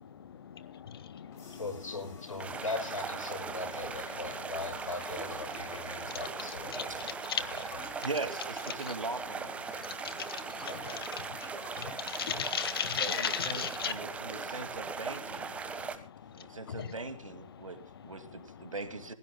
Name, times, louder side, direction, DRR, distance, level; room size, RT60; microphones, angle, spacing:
voice 1, 0.0-1.6 2.4-2.6 5.9-6.2 6.7-6.9 7.3-7.7 9.7-13.9 15.6-16.9, left 8 dB, 45° left, 1.6 m, -37 dB
sound 1, 1.3-13.7, left 3 dB, 15° left, 6.3 m, -54 dB
voice 2, 1.6-7.1 7.4-7.9 10.7-11.2, left 2 dB, 80° left, 6.6 m, -40 dB
sound 2, 2.4-16.0, right 5 dB, 5° right, 1.3 m, -39 dB
voice 3, 8.0-9.8 12.3-12.4 12.9-15.6 16.4-19.1, right 3 dB, 80° right, 2.2 m, -40 dB
26.5 x 16.5 x 2.2 m
figure-of-eight pair, 140°, 17 cm